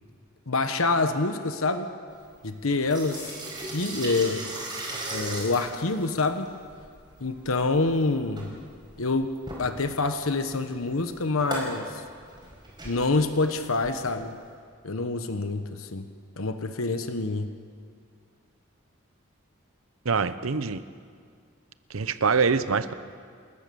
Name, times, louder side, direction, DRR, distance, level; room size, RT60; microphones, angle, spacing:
voice 1, 0.5-1.9 2.4-3.3 3.7-4.4 5.1-6.5 7.2-8.5 9.0-11.8 12.8-14.3 14.8-16.0 16.4-17.5, left 3 dB, 90° left, 8 dB, 1.1 m, -26 dB
sound 1, 2.1-14.5, right 2 dB, 20° right, 5.3 m, -39 dB
voice 2, 20.0-20.8 21.9-22.9, right 5 dB, 90° right, 13 dB, 0.8 m, -24 dB
28.5 x 14.0 x 7.0 m, 2.1 s
head